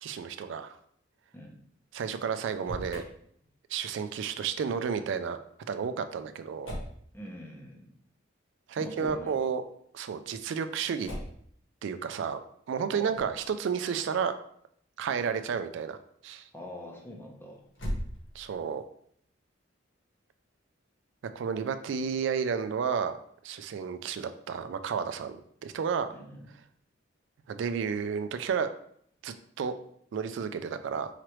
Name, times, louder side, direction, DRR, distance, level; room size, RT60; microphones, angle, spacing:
voice 1, 0.0-0.8 1.9-3.0 3.7-5.4 5.7-6.7 8.7-9.6 9.9-11.1 11.8-12.4 12.7-14.3 15.0-16.0 16.2-16.5 18.4-18.8 21.4-23.2 23.4-26.1 27.5-28.7 29.2-29.7 30.1-31.1, right 6 dB, 70° right, 10 dB, 0.3 m, -31 dB
Motor vehicle (road), 2.5-3.1 6.6-7.0 9.0-9.3 11.0-11.5 13.1-13.4 17.7-18.6, equal, 70° left, 1.2 m, -38 dB
voice 2, 7.1-7.9 8.8-9.5 12.9-13.2 16.5-17.7 26.1-26.5, equal, 10° left, -1 dB, 0.8 m, -44 dB
4.8 x 3.0 x 3.0 m, 0.66 s
head